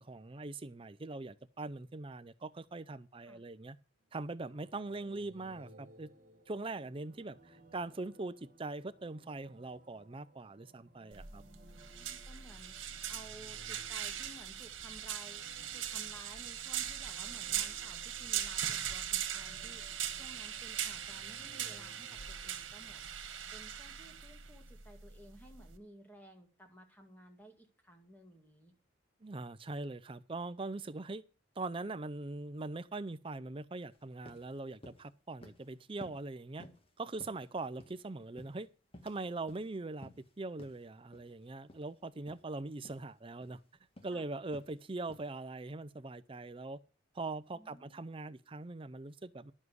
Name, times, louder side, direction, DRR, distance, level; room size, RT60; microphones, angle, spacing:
voice 1, 0.0-3.8 4.1-6.1 6.5-11.4 29.2-31.2 31.6-36.7 37.0-38.7 39.0-40.1 40.4-43.6 44.0-46.8 47.1-49.5, right 2 dB, 30° right, 0.5 m, -42 dB
sound 1, 4.2-23.0, right 1 dB, 45° right, 1.5 m, -61 dB
sound 2, 11.1-25.8, right 10 dB, 80° right, 1.5 m, -40 dB
voice 2, 11.3-15.4 15.7-19.8 20.1-23.1 23.5-28.7 44.1-44.2 47.5-48.0, right 1 dB, 10° left, 2.0 m, -56 dB
sound 3, 33.9-34.0 34.3-34.5 34.8-35.1 35.4-35.7 36.0-36.3 36.6-36.9 37.2-38.0 38.4-39.2 39.5-39.7 40.0-40.3 40.6-40.8 41.1-41.3 41.7-41.9 42.2-42.4 42.8-43.1 43.4-43.6 44.0-44.2 44.5-44.7 45.1-45.3, left 1 dB, 30° left, 1.5 m, -54 dB
11.0 x 7.3 x 6.4 m
head